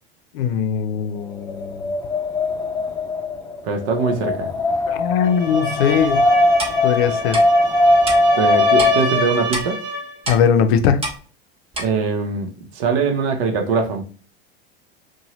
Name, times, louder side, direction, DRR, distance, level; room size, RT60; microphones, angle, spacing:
voice 1, 0.3-1.9 4.9-6.2 6.8-7.4 10.3-11.1, left 7 dB, 70° left, 0.5 m, -20 dB
Wind, 1.3-9.3, left 2 dB, 15° left, 0.5 m, -20 dB
voice 2, 3.6-4.5 8.4-9.8 11.8-14.0, right 4 dB, 65° right, 0.8 m, -22 dB
sound 1, 5.2-10.2, right 1 dB, 50° right, 1.2 m, -27 dB
Clock, 6.6-6.8 7.3-7.4 8.1-8.2 8.8-8.9 9.5-9.7 10.2-10.4 11.0-11.2 11.7-11.9, right 2 dB, 20° right, 0.9 m, -26 dB
2.7 x 2.2 x 3.0 m
hypercardioid pair, 95°, 32 cm